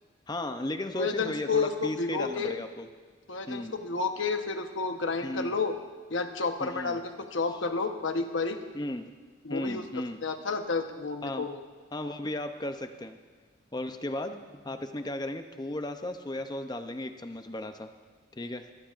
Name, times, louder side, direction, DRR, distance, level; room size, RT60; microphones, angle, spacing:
voice 1, 0.3-2.9 3.5-3.7 5.2-5.5 6.6-7.0 8.7-9.0 9.5-10.2 11.2-11.5 11.9-13.2 13.7-17.9 18.4-18.7, left 1 dB, 20° left, 7 dB, 0.6 m, -35 dB
voice 2, 0.9-2.6 3.3-5.7 6.1-7.0 7.3-8.6 9.4-9.8 10.2-11.6, left 4 dB, 75° left, 6 dB, 1.0 m, -30 dB
22.0 x 14.5 x 2.5 m, 1.5 s
head